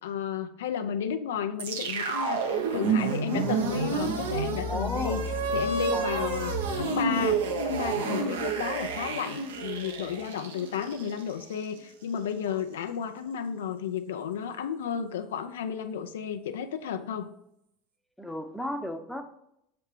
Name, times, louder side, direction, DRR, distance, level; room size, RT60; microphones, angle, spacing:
voice 1, 0.0-2.4 2.7-5.2 5.5-17.3, left 7 dB, 70° left, 8 dB, 0.4 m, -32 dB
sound 1, 1.6-11.8, right 4 dB, 75° right, 0.8 m, -30 dB
voice 2, 3.3-3.7 4.7-5.2 5.9-6.4 8.0-8.5 18.2-19.2, equal, 5° left, 6 dB, 0.7 m, -34 dB
6.4 x 3.4 x 4.6 m, 0.77 s
figure-of-eight pair, 75°, 0 cm